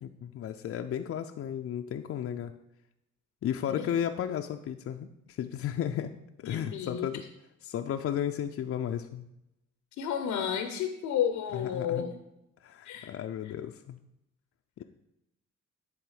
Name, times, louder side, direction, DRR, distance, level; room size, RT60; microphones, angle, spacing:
voice 1, 0.0-2.5 3.4-6.1 6.4-7.2 7.6-9.3 11.5-12.0 12.6-14.0, left 9 dB, 50° left, 5 dB, 0.4 m, -34 dB
voice 2, 6.4-7.1 10.0-12.1 12.8-13.1, left 9 dB, 90° left, 6 dB, 0.7 m, -31 dB
10.0 x 3.6 x 4.9 m, 0.86 s
cardioid pair, 90°, 30 cm